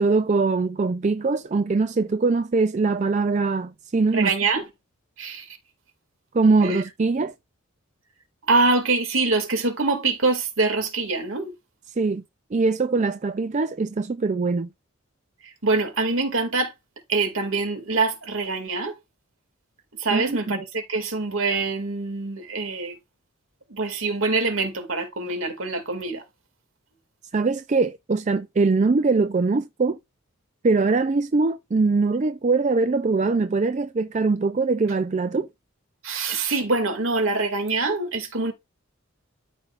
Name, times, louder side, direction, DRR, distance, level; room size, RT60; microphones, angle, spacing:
voice 1, 0.0-4.3 6.3-7.3 12.0-12.2 12.5-14.7 20.1-20.6 27.3-30.0 30.6-35.5, right 3 dB, 35° right, 0.4 m, -22 dB
voice 2, 4.1-4.6 5.2-5.5 6.6-6.8 8.5-11.5 15.4-16.7 17.1-18.9 20.0-22.9 23.7-26.2 36.0-38.5, right 3 dB, 70° right, 2.4 m, -24 dB
13.0 x 5.3 x 2.5 m
head